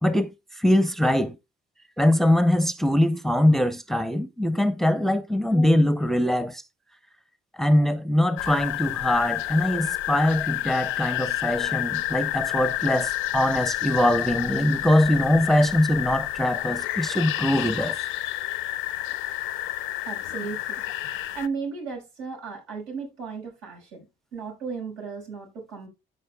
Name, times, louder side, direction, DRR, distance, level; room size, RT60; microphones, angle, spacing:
voice 1, 0.0-1.4 2.0-6.6 7.5-18.0, left 1 dB, ahead, 0.6 m, -22 dB
sound 1, 8.4-21.5, left 15 dB, 90° left, 0.5 m, -29 dB
voice 2, 20.0-20.8 21.3-24.1 24.3-25.9, right 5 dB, 90° right, 5.3 m, -35 dB
14.0 x 5.2 x 2.2 m
cardioid pair, 90°, 20 cm